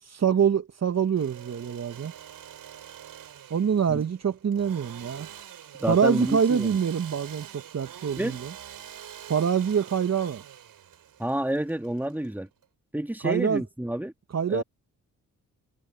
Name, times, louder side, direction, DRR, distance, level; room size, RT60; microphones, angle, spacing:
voice 1, 0.0-2.1 3.5-5.3 5.9-8.5 9.3-10.4 13.2-13.6 14.3-14.6, right 7 dB, 50° right, 1.4 m, -25 dB
Engine / Sawing, 1.0-12.6, right 10 dB, 75° right, 6.8 m, -45 dB
voice 2, 5.8-6.7 8.2-8.4 11.2-12.5 12.9-14.1 14.5-14.6, right 1 dB, 5° right, 2.3 m, -29 dB
supercardioid pair, 50°, 34 cm